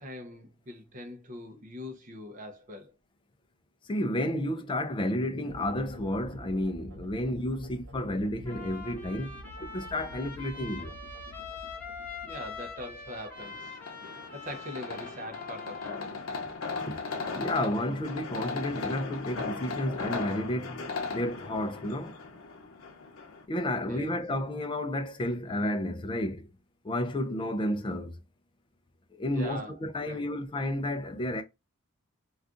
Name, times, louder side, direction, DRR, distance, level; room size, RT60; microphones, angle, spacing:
voice 1, 0.0-2.9 12.2-16.4 23.8-24.2 29.3-29.7 30.0-30.3, left 1 dB, 40° right, 0.5 m, -42 dB
voice 2, 3.9-10.9 16.8-17.0 17.3-20.9 21.1-22.2 23.5-26.5 26.8-28.2 29.1-31.4, left 1 dB, 25° left, 0.4 m, -31 dB
sound 1, 5.4-13.6, equal, 70° right, 0.8 m, -48 dB
Trumpet, 8.5-16.1, left 5 dB, 10° left, 0.9 m, -44 dB
sound 2, 13.4-23.4, left 4 dB, 90° left, 0.6 m, -37 dB
2.4 x 2.3 x 3.6 m
head